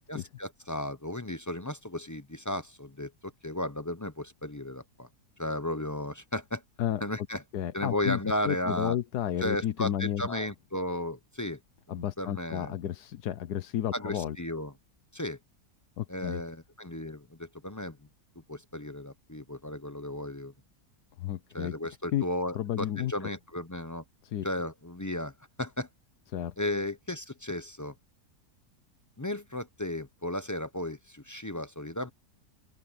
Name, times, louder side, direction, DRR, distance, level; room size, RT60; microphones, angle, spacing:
voice 1, 0.1-5.1 5.4-6.6 7.0-7.4 7.7-9.0 9.4-11.6 11.9-12.7 13.9-14.7 15.1-15.4 16.1-18.0 18.5-20.5 21.5-24.0 24.4-25.3 25.6-25.9 26.6-27.9 29.2-32.1, left 1 dB, 20° left, 0.5 m, -34 dB
voice 2, 7.5-8.2 8.4-10.5 11.9-14.4 16.0-16.4 21.2-21.7 22.1-22.2 22.5-23.3 24.2-24.5 26.3-26.5, left 11 dB, 85° left, 1.4 m, -32 dB
open air
omnidirectional pair, 1.7 m